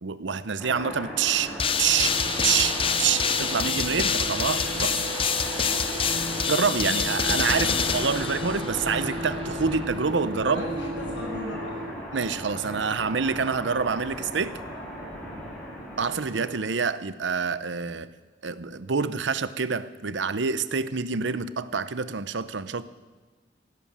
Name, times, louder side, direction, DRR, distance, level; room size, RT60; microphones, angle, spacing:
voice 1, 0.0-5.1 6.5-10.6 12.1-14.6 16.0-18.1 18.4-22.8, right 6 dB, 80° right, 14 dB, 0.7 m, -27 dB
sound 1, 0.6-16.6, equal, 10° left, 5.5 m, -37 dB
sound 2, 1.6-8.9, left 7 dB, 30° left, 0.6 m, -27 dB
sound 3, 2.0-11.9, right 1 dB, 30° right, 0.5 m, -35 dB
voice 2, 7.5-7.8 10.4-12.0, equal, 80° left, -2 dB, 6.7 m, -36 dB
16.0 x 11.0 x 7.4 m, 1.3 s
head